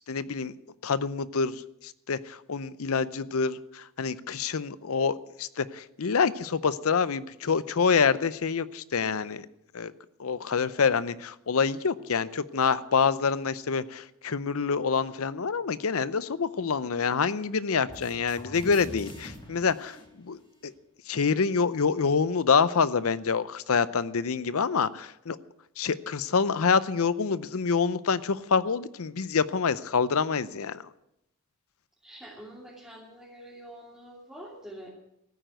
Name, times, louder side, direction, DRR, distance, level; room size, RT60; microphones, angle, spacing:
voice 1, 0.1-0.5 0.8-1.6 2.1-9.5 9.7-9.9 10.2-20.0 20.3-20.7 21.1-25.4 25.8-30.8, left 5 dB, 70° left, 16 dB, 0.6 m, -26 dB
sound 1, 17.9-20.8, left 1 dB, 25° left, 2.4 m, -45 dB
voice 2, 32.0-34.9, right 1 dB, 5° right, -6 dB, 2.7 m, -46 dB
15.0 x 9.2 x 7.8 m, 0.82 s
head